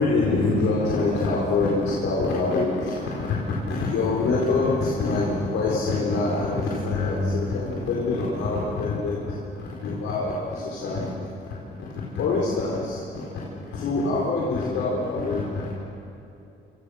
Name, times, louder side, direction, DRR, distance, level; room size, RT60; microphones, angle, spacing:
voice 1, 0.0-15.7, left 3 dB, 80° left, -4 dB, 4.5 m, -25 dB
27.5 x 26.5 x 6.5 m, 2.8 s
cardioid pair, 90°, 20 cm